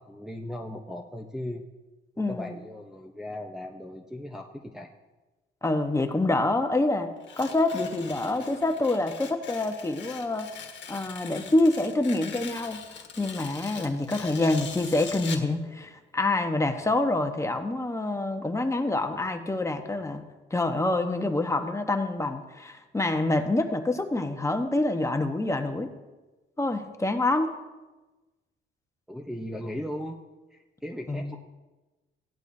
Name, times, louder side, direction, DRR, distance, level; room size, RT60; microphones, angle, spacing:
voice 1, 0.0-1.6 2.3-4.9 29.1-30.2 30.5-31.4, left 1 dB, ahead, -1 dB, 0.9 m, -37 dB
voice 2, 2.2-2.6 5.6-7.1 7.4-10.5 10.9-12.8 13.2-20.2 20.5-25.9 26.6-27.5 31.1-31.3, left 2 dB, 15° left, 5 dB, 1.1 m, -26 dB
Tearing, 7.2-15.5, left 7 dB, 65° left, 1.5 m, -42 dB
16.5 x 11.0 x 2.7 m, 1.1 s
cardioid pair, 90°, 20 cm